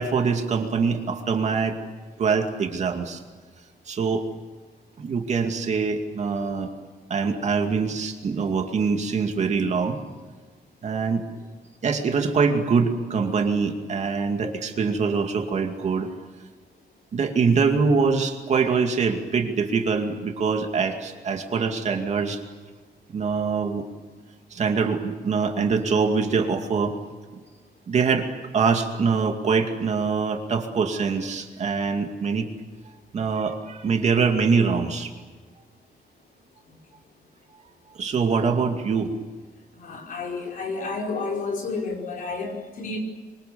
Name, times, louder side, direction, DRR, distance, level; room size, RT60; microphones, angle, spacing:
voice 1, 0.0-1.8 2.2-3.2 3.9-4.3 5.0-6.7 7.1-10.0 10.8-11.2 11.8-16.1 17.1-22.4 23.1-23.8 24.5-27.0 27.9-28.3 28.5-32.5 33.1-35.1 37.9-39.1, right 5 dB, 45° right, 4 dB, 2.4 m, -24 dB
voice 2, 39.8-43.0, left 3 dB, 55° left, 0 dB, 5.3 m, -31 dB
25.0 x 25.0 x 7.0 m, 1.4 s
wide cardioid pair, 180°, 17 cm